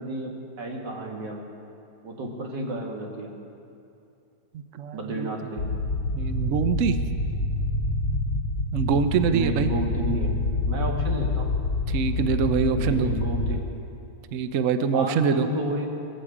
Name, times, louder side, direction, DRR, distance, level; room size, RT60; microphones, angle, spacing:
voice 1, 0.0-1.5 2.0-3.3 4.9-5.6 9.3-11.5 12.8-13.7 14.9-15.9, right 2 dB, 90° right, 0 dB, 2.5 m, -32 dB
voice 2, 4.5-5.3 6.1-7.0 8.7-9.7 11.9-13.2 14.3-15.5, right 6 dB, 60° right, 9 dB, 0.9 m, -24 dB
sound 1, 5.6-13.6, left 2 dB, 75° left, 1.6 m, -27 dB
19.0 x 15.5 x 4.9 m, 2.7 s
omnidirectional pair, 1.8 m